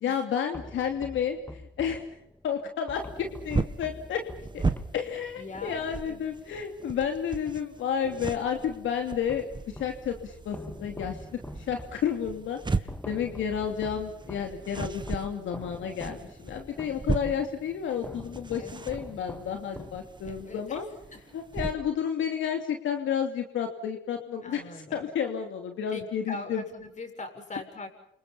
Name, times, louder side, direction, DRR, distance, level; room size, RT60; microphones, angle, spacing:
voice 1, 0.0-2.0 2.4-4.2 4.5-4.6 4.9-11.3 11.6-20.9 21.3-24.6 24.9-26.6, left 8 dB, 75° left, 4 dB, 2.9 m, -31 dB
sound 1, 0.5-7.7 8.0-10.1 10.5-20.5, left 1 dB, 10° left, 2.0 m, -46 dB
sound 2, 2.9-21.7, right 3 dB, 25° right, 1.8 m, -37 dB
voice 2, 5.4-6.3 16.7-17.5 18.6-19.0 20.2-20.9 21.1-21.2 24.4-25.1 25.9-27.9, left 2 dB, 35° left, 6 dB, 7.4 m, -42 dB
29.5 x 27.0 x 5.7 m, 0.75 s
cardioid pair, 90°, 20 cm